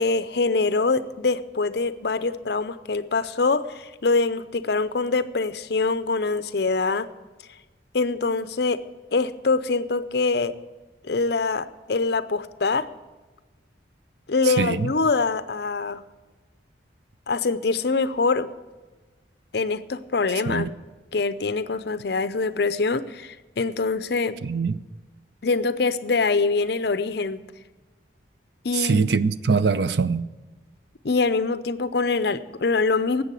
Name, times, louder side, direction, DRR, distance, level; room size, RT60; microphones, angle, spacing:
voice 1, 0.0-7.1 7.9-8.8 9.1-10.5 11.0-12.9 14.3-16.0 17.3-18.5 19.5-20.7 21.1-24.4 25.4-27.4 28.6-29.1 31.0-33.2, left 3 dB, 60° left, 14 dB, 0.6 m, -24 dB
voice 2, 14.6-14.9 20.5-20.6 24.4-24.7 28.8-30.2, right 5 dB, 65° right, 14 dB, 0.5 m, -22 dB
12.5 x 8.3 x 8.3 m, 1.3 s
head